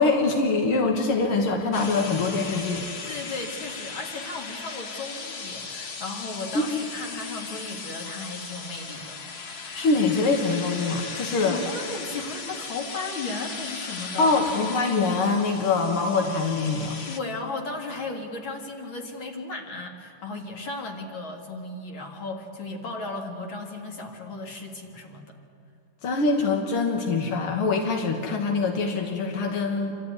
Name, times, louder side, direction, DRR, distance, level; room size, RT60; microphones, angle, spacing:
voice 1, 0.0-2.9 6.5-6.6 9.7-11.6 14.2-17.0 26.0-30.0, left 3 dB, 90° left, 2 dB, 2.3 m, -24 dB
sound 1, 1.7-17.2, left 4 dB, 45° left, 0.8 m, -37 dB
voice 2, 3.1-9.2 11.4-14.4 17.1-25.4, left 3 dB, 65° left, 2 dB, 2.9 m, -35 dB
28.0 x 13.0 x 9.4 m, 2.6 s
omnidirectional pair, 2.3 m